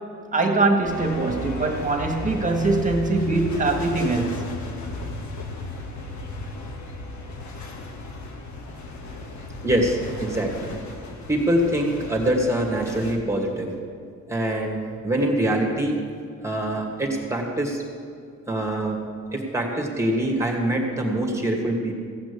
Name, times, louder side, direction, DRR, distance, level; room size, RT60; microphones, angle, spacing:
voice 1, 0.3-4.5, right 3 dB, 25° right, 3 dB, 1.8 m, -22 dB
sound 1, 0.8-13.2, left 2 dB, 70° left, 1.7 m, -35 dB
voice 2, 9.6-10.7 11.3-13.7 14.3-16.0 16.4-17.8 18.5-19.0 19.3-21.9, right 1 dB, 10° right, 0 dB, 2.3 m, -24 dB
16.0 x 6.1 x 8.6 m, 2.3 s
cardioid pair, 90°, 30 cm